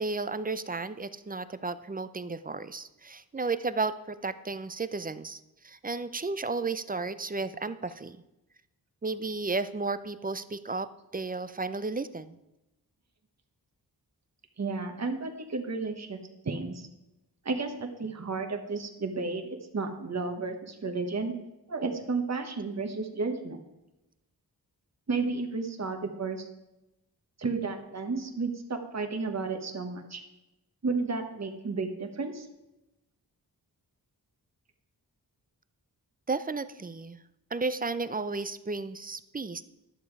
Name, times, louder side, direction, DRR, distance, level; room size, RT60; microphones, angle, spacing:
voice 1, 0.0-8.2 9.0-10.9 11.1-12.4 36.3-37.2 37.5-39.6, right 3 dB, 20° right, 14 dB, 0.5 m, -33 dB
voice 2, 14.6-16.2 16.4-16.9 17.4-21.3 21.7-23.6 25.1-26.5 27.4-30.2 30.8-32.5, right 4 dB, 40° right, 5 dB, 1.3 m, -32 dB
11.0 x 7.0 x 4.7 m, 0.94 s
cardioid pair, 60°, 39 cm